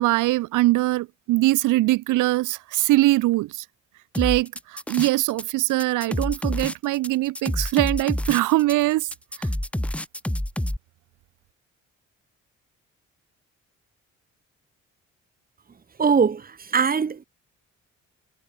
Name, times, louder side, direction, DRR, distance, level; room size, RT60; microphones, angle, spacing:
voice 1, 0.0-3.6 4.2-9.1 9.4-9.5, right 18 dB, 85° right, 0.7 m, -22 dB
sound 1, 4.1-5.4 5.7-10.8, left 1 dB, 5° left, 1.1 m, -28 dB
voice 2, 16.0-17.2, right 6 dB, 30° right, 1.2 m, -21 dB
cardioid pair, 90°, 30 cm